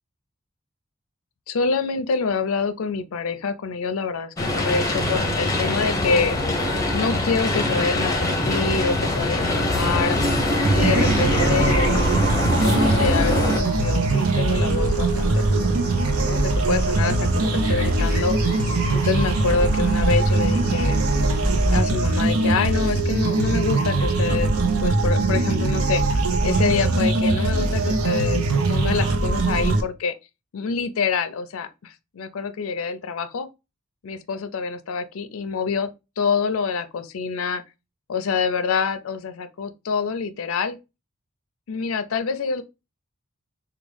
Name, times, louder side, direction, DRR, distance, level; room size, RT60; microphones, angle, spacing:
voice 1, 1.5-6.4 6.9-10.2 10.7-12.1 12.6-15.8 16.2-18.4 18.9-21.0 21.7-24.5 24.8-26.0 26.4-28.4 28.7-30.1 30.5-33.5 34.0-35.9 36.2-37.6 38.1-40.8 41.7-42.6, left 5 dB, 75° left, 0.4 m, -26 dB
sound 1, 4.4-13.6, left 1 dB, 15° left, 0.6 m, -23 dB
sound 2, 9.9-21.9, equal, 35° right, 2.1 m, -30 dB
sound 3, 10.6-29.8, right 2 dB, 90° right, 0.6 m, -21 dB
3.5 x 2.3 x 3.3 m
head